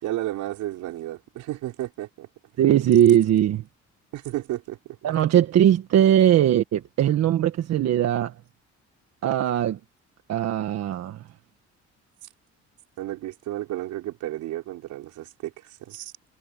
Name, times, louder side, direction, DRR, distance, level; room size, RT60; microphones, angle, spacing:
voice 1, 0.0-2.3 4.1-4.8 13.0-15.5 15.9-16.1, right 15 dB, 85° right, 5.5 m, -32 dB
voice 2, 2.6-3.6 5.0-8.3 9.2-9.8 10.3-11.2, right 11 dB, 60° right, 1.6 m, -20 dB
cardioid pair, 140°, 29 cm